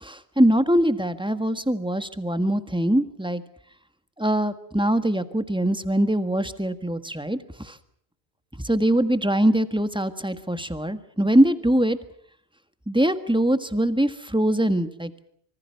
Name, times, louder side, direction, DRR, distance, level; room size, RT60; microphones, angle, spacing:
voice 1, 0.0-3.4 4.2-7.4 7.6-7.7 8.6-12.0 12.9-15.1, right 1 dB, 5° right, 10 dB, 1.5 m, -22 dB
26.0 x 24.5 x 5.9 m, 0.64 s
omnidirectional pair, 1.1 m